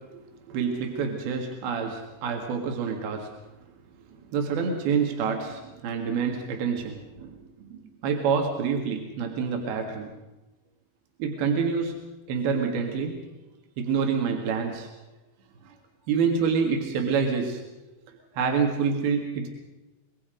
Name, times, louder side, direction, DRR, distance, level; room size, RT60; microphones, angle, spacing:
voice 1, 0.0-3.4 4.2-10.2 11.2-13.2 13.8-14.9 15.6-15.8 16.1-17.6 18.1-19.5, right 6 dB, 70° right, 3 dB, 3.6 m, -27 dB
25.5 x 22.0 x 5.1 m, 1.1 s
omnidirectional pair, 4.6 m